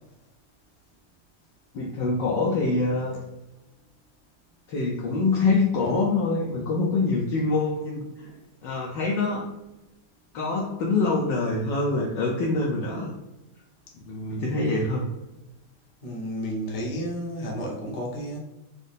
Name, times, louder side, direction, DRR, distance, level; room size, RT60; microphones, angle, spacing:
voice 1, 1.7-3.2 4.7-8.3 8.6-9.5 10.3-13.1 14.0-15.0, left 3 dB, 70° left, -2 dB, 1.2 m, -25 dB
voice 2, 16.0-18.4, equal, 85° left, -2 dB, 0.4 m, -32 dB
5.1 x 2.0 x 4.1 m, 0.98 s
omnidirectional pair, 2.4 m